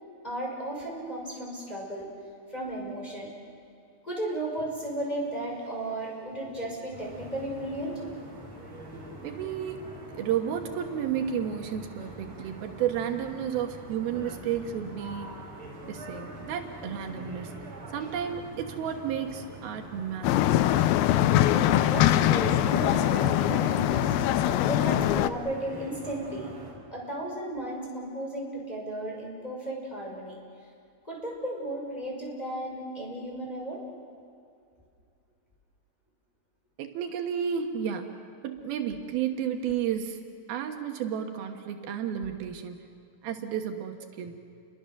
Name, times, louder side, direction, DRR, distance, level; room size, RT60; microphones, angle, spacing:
voice 1, 0.2-2.1 2.5-3.3 4.0-8.0 21.2-24.1 24.6-26.5 26.9-30.4 31.0-33.8, right 1 dB, 10° left, -3 dB, 5.6 m, -35 dB
sound 1, 6.9-26.7, right 1 dB, 35° right, 5.3 m, -44 dB
voice 2, 9.2-9.8 10.1-15.3 15.9-17.5 17.9-20.7 36.8-38.1 38.4-40.2 40.5-42.8 43.2-44.4, right 8 dB, 80° right, 4 dB, 3.2 m, -32 dB
sound 2, 20.2-25.3, left 12 dB, 85° left, 2.6 m, -23 dB
29.5 x 23.5 x 6.6 m, 2.4 s
omnidirectional pair, 4.3 m